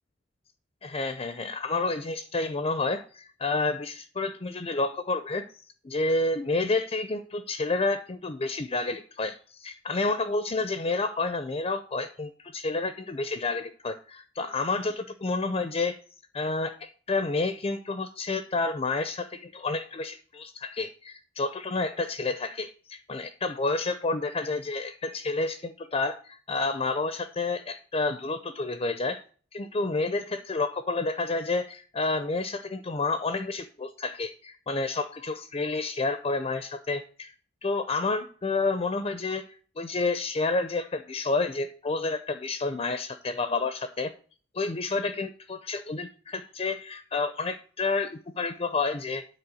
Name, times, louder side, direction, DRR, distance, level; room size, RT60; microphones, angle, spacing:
voice 1, 0.8-5.5 5.8-16.0 16.3-29.2 29.5-37.3 37.6-39.5 39.8-44.1 44.5-49.3, left 3 dB, 30° left, 10 dB, 0.5 m, -29 dB
9.8 x 4.4 x 7.6 m, 0.42 s
head